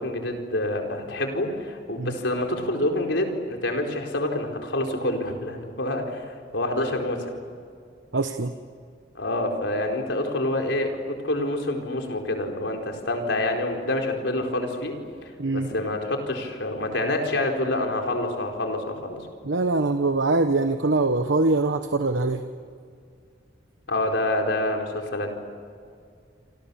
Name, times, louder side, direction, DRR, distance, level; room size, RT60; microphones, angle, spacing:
voice 1, 0.0-6.2 6.5-7.3 9.1-19.3 23.9-25.3, left 1 dB, 85° left, 2 dB, 4.4 m, -27 dB
voice 2, 8.1-8.5 15.4-15.7 19.4-22.4, right 2 dB, 90° right, 7 dB, 1.1 m, -23 dB
28.5 x 26.5 x 7.1 m, 2.2 s
head